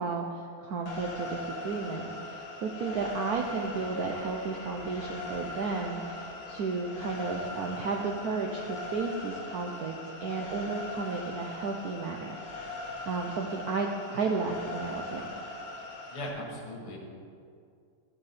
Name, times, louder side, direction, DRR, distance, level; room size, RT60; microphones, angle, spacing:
voice 1, 0.0-10.0 10.2-12.4 13.1-15.3, right 4 dB, 70° right, 1 dB, 0.9 m, -33 dB
sound 1, 0.9-16.3, left 2 dB, 65° left, 2.1 m, -40 dB
sound 2, 2.9-12.3, left 1 dB, 25° left, 0.9 m, -52 dB
voice 2, 16.1-17.0, left 1 dB, 80° left, -1 dB, 2.6 m, -38 dB
13.0 x 8.1 x 4.2 m, 2.3 s
omnidirectional pair, 2.4 m